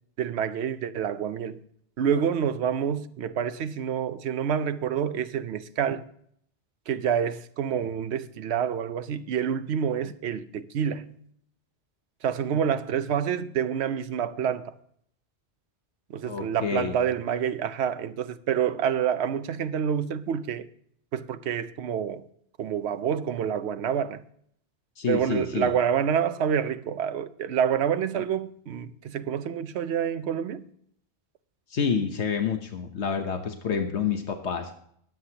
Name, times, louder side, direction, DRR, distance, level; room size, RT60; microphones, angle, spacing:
voice 1, 0.2-1.6 2.0-6.0 6.9-11.2 12.2-14.8 16.1-20.7 21.1-22.2 22.6-24.2 25.1-30.7, right 8 dB, 75° right, 0.9 m, -28 dB
voice 2, 16.2-16.9 25.0-25.7 31.7-34.8, left 6 dB, 80° left, 1.3 m, -28 dB
21.5 x 8.0 x 2.9 m
omnidirectional pair, 1.1 m